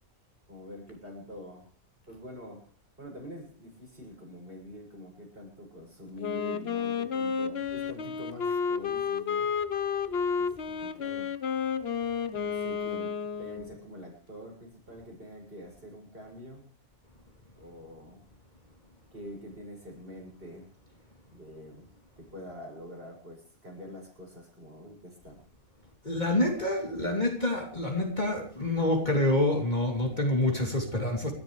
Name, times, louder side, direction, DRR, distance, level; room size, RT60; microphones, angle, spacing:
voice 1, 0.5-1.7 2.1-2.7 3.0-9.5 9.9-11.3 12.3-16.7 17.6-18.3 19.1-20.7 21.3-21.9 22.2-25.4, left 1 dB, 40° right, 7.1 m, -46 dB
Wind instrument woodwind instrument, 6.2-13.8, left 6 dB, 50° left, 1.1 m, -31 dB
voice 2, 26.0-31.3, left 1 dB, 30° left, 3.2 m, -27 dB
30.0 x 13.0 x 3.3 m
omnidirectional pair, 1.5 m